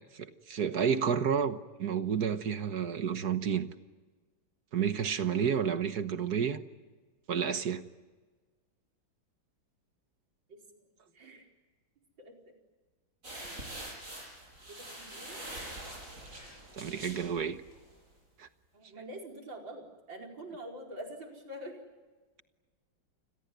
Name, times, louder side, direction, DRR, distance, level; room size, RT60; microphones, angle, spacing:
voice 1, 0.0-3.7 4.7-6.6 7.3-7.8 16.7-17.6 18.4-18.5, right 7 dB, 55° right, 11 dB, 1.6 m, -30 dB
voice 2, 11.2-11.5 12.2-12.5 13.4-13.6 14.7-15.4 18.7-21.8, right 1 dB, 75° right, 2 dB, 5.4 m, -45 dB
sound 1, 13.2-17.9, right 1 dB, 40° right, 8.1 m, -44 dB
29.0 x 22.0 x 9.5 m, 1.3 s
omnidirectional pair, 2.1 m